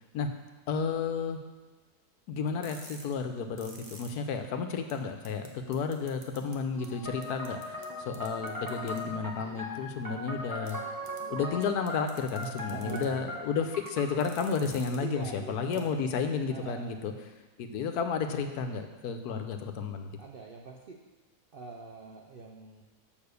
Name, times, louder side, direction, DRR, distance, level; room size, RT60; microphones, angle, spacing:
voice 1, 0.7-1.4 2.3-7.8 8.1-10.8 11.3-17.1 17.6-20.1, left 5 dB, 75° left, 6 dB, 1.2 m, -32 dB
sound 1, 2.5-4.1 4.5-4.6 4.9-5.0 5.2-5.5 5.7-6.5 6.8-6.9 7.2-7.8 8.1-9.0 10.6-10.7 11.0-11.2 11.6-13.0 14.0-15.0 15.2-15.3 15.7-15.8, right 2 dB, 30° right, 0.8 m, -49 dB
sound 2, 6.4-11.7, left 1 dB, 15° left, 0.8 m, -51 dB
sound 3, 7.1-14.3, equal, 15° right, 1.2 m, -39 dB
voice 2, 12.7-13.2 15.0-16.0 16.5-17.2 20.2-21.0 21.5-22.8, right 4 dB, 65° right, 1 dB, 0.5 m, -43 dB
6.8 x 5.4 x 6.7 m, 1.2 s
omnidirectional pair, 1.7 m